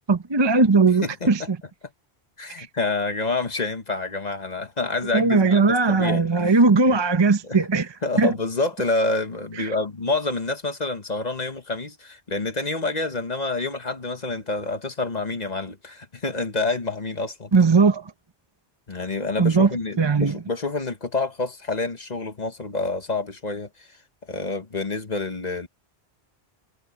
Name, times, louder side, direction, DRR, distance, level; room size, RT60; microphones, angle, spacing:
voice 1, 0.0-1.6 2.6-2.7 5.1-7.9 8.2-8.3 9.6-9.7 17.5-18.0 19.4-19.7 20.0-20.3, right 4 dB, 25° right, 0.8 m, -18 dB
voice 2, 1.0-1.5 2.4-7.0 7.4-7.6 8.0-17.5 18.9-23.7 24.3-25.7, left 3 dB, 40° left, 1.4 m, -28 dB
omnidirectional pair, 1.1 m